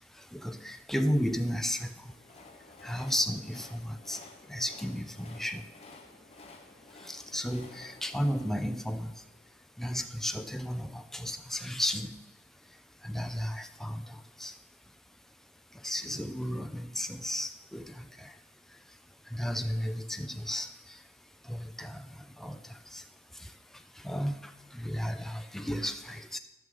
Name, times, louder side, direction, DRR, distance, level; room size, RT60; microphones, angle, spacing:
voice 1, 0.3-2.0 2.8-4.2 4.5-5.6 7.0-9.1 9.8-12.1 13.0-14.5 15.8-18.3 19.3-20.7 21.5-22.0 22.4-22.6 22.9-23.0 24.0-24.3 24.7-26.4, equal, ahead, 7 dB, 0.3 m, -33 dB
Train, 1.8-9.9, left 3 dB, 30° left, 0.9 m, -53 dB
14.0 x 6.3 x 3.8 m, 1.1 s
head